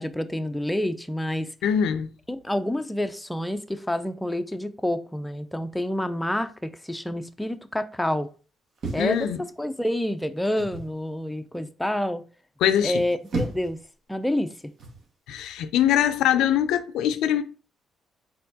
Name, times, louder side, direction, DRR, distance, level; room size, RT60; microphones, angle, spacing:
voice 1, 0.0-1.5 2.3-8.3 8.9-9.3 9.6-12.2 12.8-13.8 14.1-14.7, left 1 dB, 5° left, 0.4 m, -28 dB
voice 2, 1.6-2.1 9.0-9.4 12.6-13.0 15.3-17.4, left 10 dB, 90° left, 0.4 m, -22 dB
sound 1, 8.8-9.8 10.6-11.0 12.9-13.8 14.8-15.1, right 2 dB, 60° right, 1.2 m, -33 dB
4.3 x 3.7 x 2.7 m
cardioid pair, 90°, 0 cm